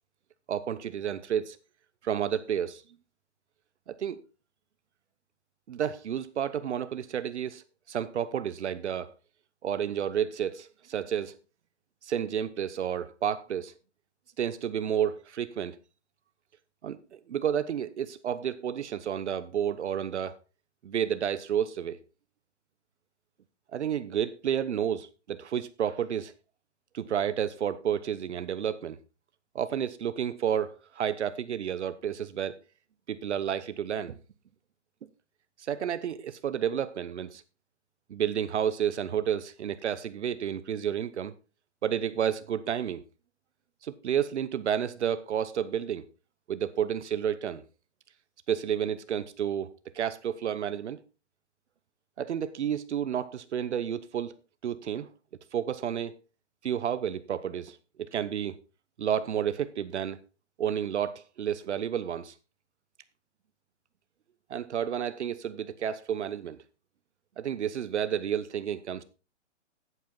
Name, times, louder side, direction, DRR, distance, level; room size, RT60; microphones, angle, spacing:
voice 1, 0.5-1.6 2.0-2.8 3.9-4.2 5.7-7.6 7.9-9.1 9.6-11.4 12.0-13.7 14.4-15.8 16.8-20.4 20.8-22.0 23.7-26.3 26.9-29.0 29.5-32.6 33.1-34.1 35.7-37.4 38.1-41.3 41.8-43.0 43.8-46.0 46.5-47.6 48.5-51.0 52.2-54.3 54.6-55.1 55.5-56.2 56.6-58.6 59.0-60.2 60.6-62.3 64.5-66.6 67.4-69.0, right 9 dB, 70° right, 1.0 m, -31 dB
12.0 x 8.4 x 3.9 m
hypercardioid pair, 165°, 36 cm